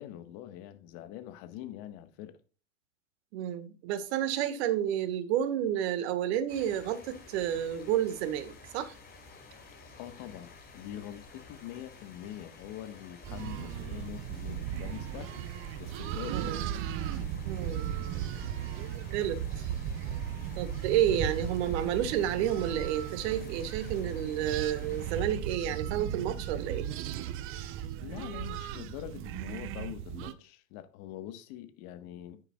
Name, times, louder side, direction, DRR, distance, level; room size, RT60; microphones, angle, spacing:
voice 1, 0.0-2.4 10.0-15.5 15.8-16.6 28.0-32.4, left 12 dB, 40° left, 1.5 m, -44 dB
voice 2, 3.3-8.9 16.3-16.6 17.4-17.9 19.1-19.4 20.6-26.8, right 10 dB, 50° right, 1.6 m, -30 dB
sound 1, 6.5-25.2, left 4 dB, 20° left, 5.2 m, -52 dB
sound 2, 13.2-30.3, right 10 dB, 30° right, 0.8 m, -36 dB
9.8 x 9.4 x 2.4 m
hypercardioid pair, 115°, 42 cm